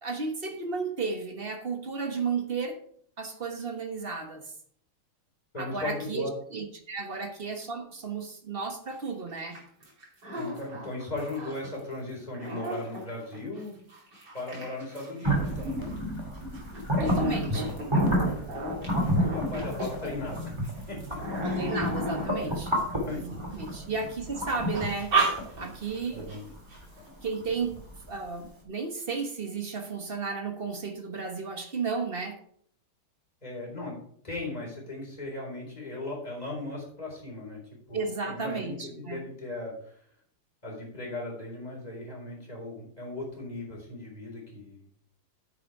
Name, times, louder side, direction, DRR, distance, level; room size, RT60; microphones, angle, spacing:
voice 1, 0.0-2.8 3.2-4.5 5.6-9.6 17.0-17.8 21.4-22.8 23.1-25.2 25.6-26.3 27.2-27.8 28.1-32.4 37.9-39.3, right 4 dB, 35° right, 5 dB, 1.0 m, -33 dB
voice 2, 5.5-6.3 10.3-13.8 14.3-15.9 19.0-20.6 20.9-21.4 22.9-23.2 26.1-26.5 33.4-33.9 34.2-37.6 37.9-38.0 38.3-40.0 40.6-44.8, left 2 dB, 15° left, -2 dB, 4.2 m, -37 dB
sound 1, 8.9-9.0 9.3-11.8 12.1-23.5 24.0-24.3 24.7-26.0 26.3-26.4 26.7-27.1, right 1 dB, 50° right, 3.7 m, -34 dB
sound 2, 15.2-28.1, equal, 15° right, 2.2 m, -30 dB
9.3 x 7.3 x 4.8 m, 0.62 s
omnidirectional pair, 2.4 m